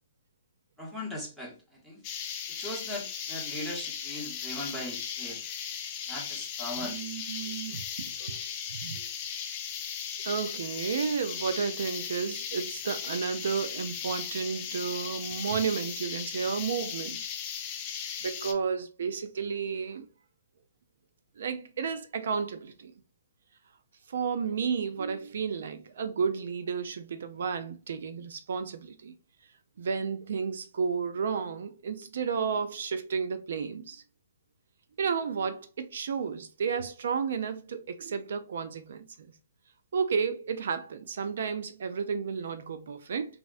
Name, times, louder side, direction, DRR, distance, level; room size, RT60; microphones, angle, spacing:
voice 1, 0.8-1.5 1.8-2.0 2.5-5.4 6.1-7.1, left 1 dB, ahead, 0.8 m, -39 dB
sound 1, 2.0-18.5, left 8 dB, 30° left, 0.5 m, -37 dB
voice 2, 6.8-8.4 8.7-9.1 10.2-17.2 18.2-20.1 21.4-22.9 24.1-29.1 29.8-34.0 35.0-39.3 39.9-43.4, right 6 dB, 70° right, 0.3 m, -32 dB
3.4 x 2.1 x 2.3 m
hypercardioid pair, 155°, 0 cm